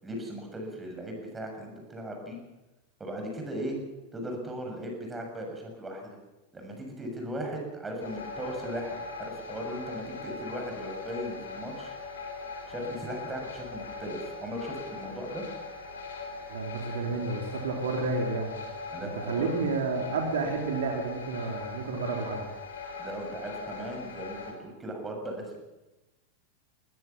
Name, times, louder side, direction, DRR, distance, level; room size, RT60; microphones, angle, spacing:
voice 1, 0.0-2.4 3.0-3.8 4.1-6.2 6.5-11.9 12.7-15.4 18.9-19.5 23.0-25.6, equal, 15° right, 2 dB, 7.0 m, -37 dB
sound 1, 8.0-24.5, left 4 dB, 65° left, 4.6 m, -40 dB
voice 2, 16.5-18.5 19.3-22.5, right 4 dB, 60° right, 2 dB, 3.0 m, -30 dB
21.0 x 19.5 x 7.3 m, 1.1 s
figure-of-eight pair, 90°, 0 cm